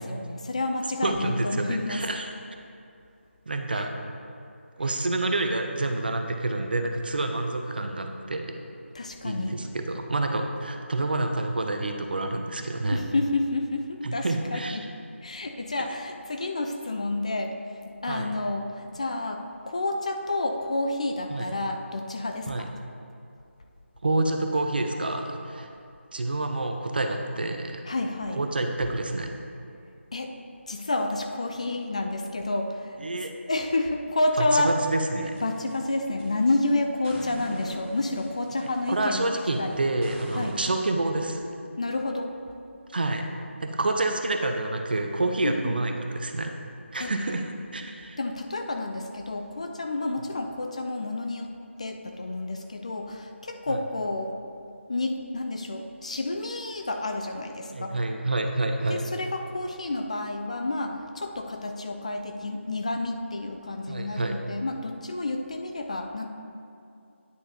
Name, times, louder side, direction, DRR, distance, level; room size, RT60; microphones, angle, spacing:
voice 1, 0.0-2.0 3.8-3.9 8.9-9.6 12.9-14.3 14.5-14.8 15.2-17.6 18.0-22.7 27.9-28.4 30.1-30.3 30.7-33.0 33.5-34.7 35.4-39.3 39.6-39.7 40.3-40.6 41.8-42.3 45.4-45.8 47.0-47.1 48.2-51.5 51.8-54.4 54.9-57.9 58.9-66.3, left 2 dB, 30° left, 4 dB, 0.3 m, -29 dB
voice 2, 1.0-2.3 3.5-3.9 4.8-8.6 9.2-13.0 14.0-14.8 18.1-18.3 21.3-21.5 22.5-22.6 24.0-25.7 26.1-27.8 28.3-29.3 33.0-33.3 34.4-35.4 38.9-41.4 42.9-43.3 43.6-46.5 46.9-48.2 53.7-53.8 57.7-59.0 63.9-64.4, right 2 dB, 45° right, 4 dB, 0.6 m, -28 dB
sound 1, 35.2-36.6 37.0-40.6, right 1 dB, 10° right, 0.7 m, -43 dB
9.7 x 6.6 x 2.8 m, 2.5 s
figure-of-eight pair, 160°, 7 cm